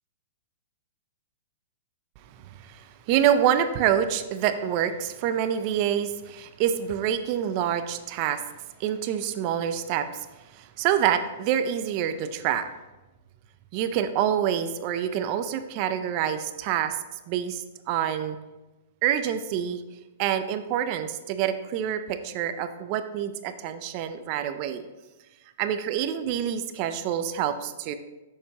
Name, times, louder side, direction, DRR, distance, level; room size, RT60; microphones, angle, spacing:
voice 1, 2.4-8.4 8.8-10.3 10.5-12.7 13.7-17.0 17.3-18.4 19.0-19.8 20.2-24.9 25.6-27.9, right 9 dB, 40° right, 10 dB, 0.5 m, -27 dB
8.4 x 6.6 x 3.0 m, 1.1 s
hypercardioid pair, 140°, 0 cm